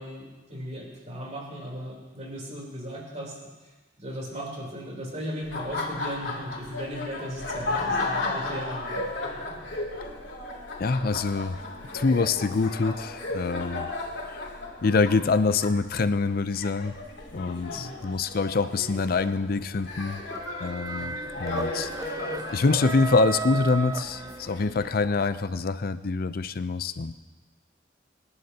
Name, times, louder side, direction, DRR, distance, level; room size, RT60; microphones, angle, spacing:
voice 1, 0.0-9.3 17.7-18.0 21.0-21.3, equal, 40° right, -2 dB, 3.5 m, -37 dB
Laughter, 5.4-25.3, left 2 dB, 85° left, 2.8 m, -35 dB
voice 2, 10.8-11.6 11.9-13.9 14.3-14.5 14.8-16.9 17.3-20.2 20.6-27.1, left 4 dB, 55° left, 12 dB, 0.5 m, -25 dB
sound 1, 20.0-24.8, right 5 dB, 20° right, 0.4 m, -36 dB
25.0 x 11.0 x 2.9 m, 1.2 s
head